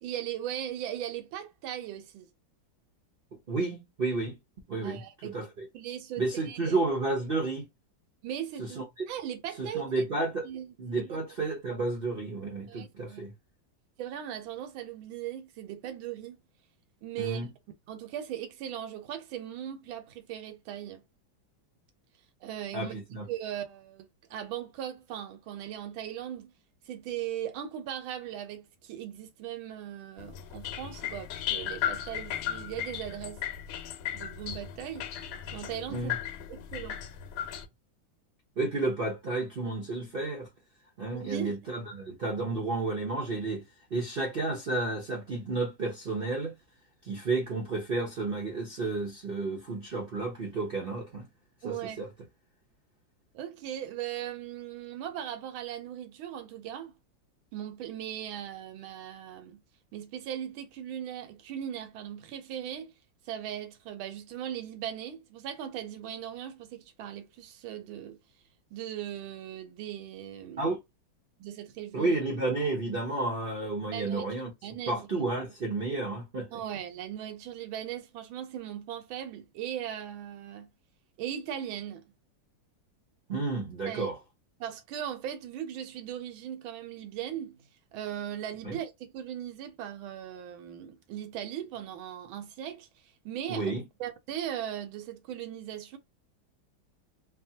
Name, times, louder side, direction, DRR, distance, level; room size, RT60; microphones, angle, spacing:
voice 1, 0.0-2.3 4.8-5.5 5.7-6.8 8.2-8.8 9.1-9.8 10.4-11.2 12.7-13.2 14.0-16.4 17.0-17.4 17.9-21.0 22.4-22.9 23.3-26.5 26.9-33.4 34.1-35.1 35.5-36.1 36.5-37.0 41.2-41.6 51.6-52.0 53.3-56.9 57.5-59.6 59.9-62.9 63.3-68.2 68.7-70.7 71.4-72.1 73.9-74.3 74.6-75.1 76.5-80.7 81.2-82.0 83.8-84.1 84.6-87.6 87.9-92.9 93.2-93.7 94.0-96.0, right 10 dB, 90° right, 1.5 m, -38 dB
voice 2, 3.5-4.4 4.7-5.7 6.2-7.7 8.6-9.0 9.6-10.5 10.8-13.3 17.2-17.5 22.7-23.3 35.9-36.2 38.6-40.5 41.0-43.7 43.9-46.6 47.0-51.3 51.6-52.1 70.6-70.8 71.9-74.5 74.9-76.6 83.3-84.2 88.6-88.8 93.5-93.9, right 3 dB, 75° right, 0.5 m, -31 dB
sound 1, 30.2-37.7, left 10 dB, 90° left, 1.4 m, -36 dB
3.4 x 2.0 x 2.7 m
omnidirectional pair, 2.1 m